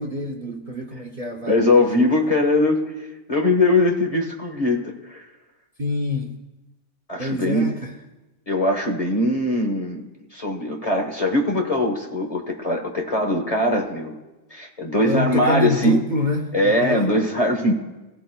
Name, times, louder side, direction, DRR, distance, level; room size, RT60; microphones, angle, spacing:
voice 1, 0.0-2.1 5.8-6.3 7.2-7.9 15.0-17.1, left 1 dB, 40° right, 2 dB, 0.9 m, -26 dB
voice 2, 1.5-5.3 7.1-7.7 8.5-10.0 10.3-14.1 14.5-16.0 16.5-17.7, left 1 dB, 30° left, 3 dB, 1.3 m, -21 dB
22.0 x 15.5 x 2.3 m, 1.1 s
omnidirectional pair, 1.4 m